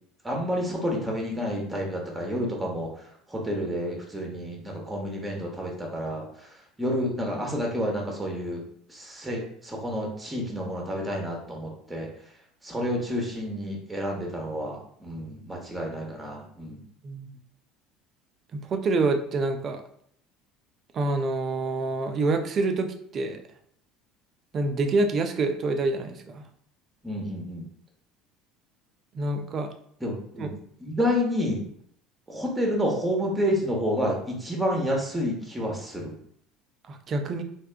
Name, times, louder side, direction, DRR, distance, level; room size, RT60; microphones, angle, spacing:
voice 1, 0.2-2.9 3.3-12.1 12.6-16.8 27.0-27.6 30.0-30.5 30.8-31.6 32.3-36.1, equal, 10° right, 0 dB, 1.1 m, -29 dB
voice 2, 18.5-19.8 20.9-23.4 24.5-26.4 29.1-29.7 30.4-30.5 36.9-37.4, right 3 dB, 40° right, 6 dB, 0.5 m, -27 dB
3.4 x 2.6 x 3.4 m, 0.66 s
figure-of-eight pair, 65°, 0 cm